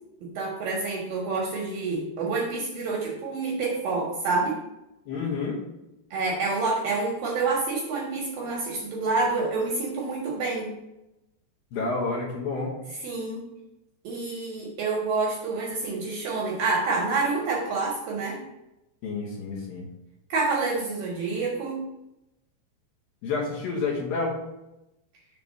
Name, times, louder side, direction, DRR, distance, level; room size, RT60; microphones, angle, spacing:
voice 1, 0.2-4.6 6.1-10.7 13.0-13.5 14.0-18.4 20.3-21.8, right 3 dB, 70° right, -2 dB, 2.2 m, -28 dB
voice 2, 5.1-5.6 11.7-12.8 19.0-19.9 23.2-24.4, left 3 dB, 65° left, -3 dB, 2.6 m, -29 dB
7.1 x 3.4 x 6.3 m, 0.90 s
omnidirectional pair, 5.0 m